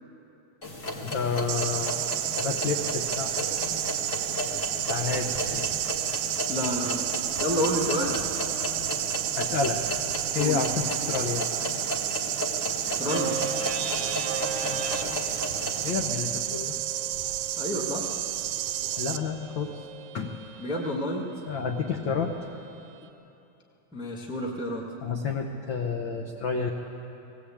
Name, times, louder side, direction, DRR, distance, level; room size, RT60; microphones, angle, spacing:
sound 1, 0.6-15.9, left 1 dB, 30° left, 1.9 m, -34 dB
voice 1, 1.0-2.0 2.4-3.4 3.7-3.8 4.9-5.6 9.4-9.8 10.3-11.5 14.7-15.1 15.8-16.8 19.0-19.8 20.1-20.3 21.5-22.3 25.0-26.7, left 5 dB, 70° left, 2 dB, 1.1 m, -30 dB
sound 2, 1.5-19.2, right 12 dB, 85° right, 2.2 m, -31 dB
voice 2, 6.5-7.0 7.4-8.2 10.3-10.6 13.0-13.3 17.6-18.1 20.6-21.3 23.9-24.8, equal, 5° right, -1 dB, 0.9 m, -29 dB
sound 3, 13.1-21.0, right 6 dB, 60° right, 1.6 m, -38 dB
19.0 x 18.0 x 8.6 m, 2.9 s
omnidirectional pair, 3.6 m